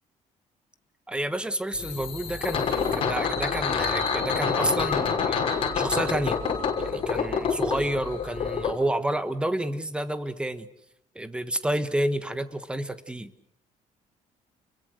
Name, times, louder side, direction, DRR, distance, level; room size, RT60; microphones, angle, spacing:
voice 1, 1.1-6.4 6.8-10.7 11.1-13.3, right 1 dB, 5° right, 10 dB, 1.4 m, -30 dB
sound 1, 1.7-8.7, left 6 dB, 40° left, 6.1 m, -27 dB
29.5 x 22.5 x 6.5 m, 0.75 s
cardioid pair, 155°, 14 cm